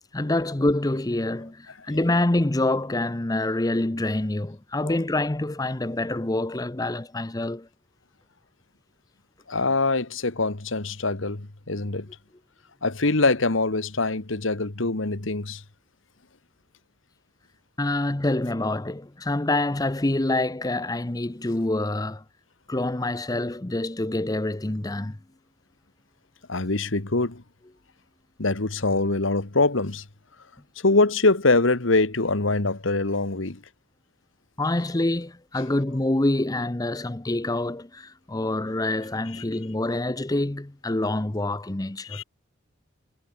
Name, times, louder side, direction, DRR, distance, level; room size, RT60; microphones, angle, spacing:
voice 1, 0.1-7.7 17.8-22.2 22.7-25.2 34.6-42.2, left 2 dB, 20° left, 0.7 m, -26 dB
voice 2, 9.5-12.1 12.8-15.6 26.5-27.4 28.4-30.0 30.8-33.6 39.3-39.4 42.1-42.2, left 3 dB, 75° left, 1.7 m, -23 dB
head